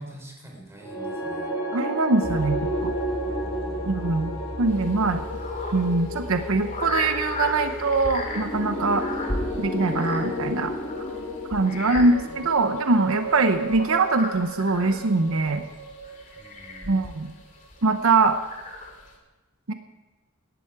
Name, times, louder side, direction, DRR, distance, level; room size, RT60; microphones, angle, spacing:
voice 1, 0.0-1.5 3.2-4.0 11.8-12.4 16.3-17.2, right 1 dB, 15° right, 0 dB, 4.0 m, -46 dB
sound 1, 0.8-17.1, equal, 20° left, 4.5 m, -32 dB
voice 2, 1.7-2.9 3.9-5.2 5.7-9.0 9.6-10.7 11.5-15.6 16.9-17.3 17.8-18.4 19.7-19.8, right 3 dB, 75° right, 8 dB, 0.8 m, -23 dB
sound 2, 2.2-13.1, equal, 85° left, 3.0 m, -40 dB
sound 3, 4.7-19.2, left 2 dB, 40° left, 2.5 m, -37 dB
17.5 x 12.0 x 4.8 m, 1.2 s
head